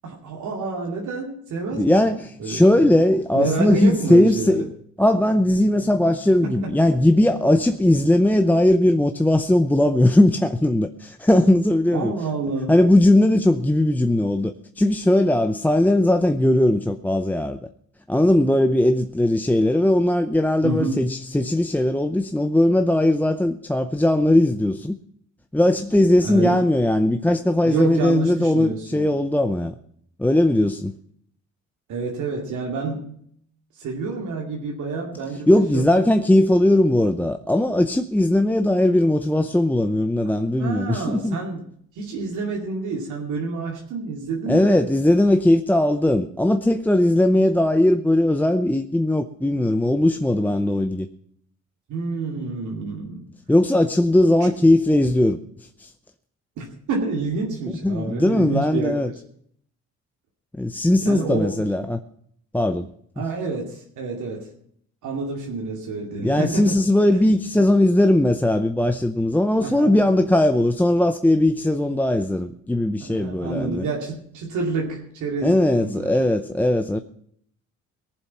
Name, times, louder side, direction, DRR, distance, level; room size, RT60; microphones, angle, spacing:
voice 1, 0.0-2.1 2.4-2.9 3.3-4.7 6.4-6.7 11.9-12.8 20.6-21.0 26.2-26.6 27.6-29.1 31.9-33.2 33.8-36.1 40.6-41.7 42.0-44.8 51.9-53.3 54.4-54.5 56.6-59.1 61.1-61.6 63.2-64.5 65.0-66.8 67.1-67.2 67.5-67.7 69.6-70.0 73.0-76.2, right 3 dB, 80° right, 2.5 m, -28 dB
voice 2, 1.7-4.6 5.0-12.1 12.7-17.7 18.1-24.9 25.5-29.8 30.2-30.9 35.5-41.4 44.5-51.1 53.5-55.9 57.8-59.1 60.5-62.0 62.5-62.9 63.2-63.3 66.2-73.8 75.4-77.0, left 1 dB, 5° left, 0.6 m, -19 dB
19.0 x 7.4 x 5.7 m
cardioid pair, 90°, 30 cm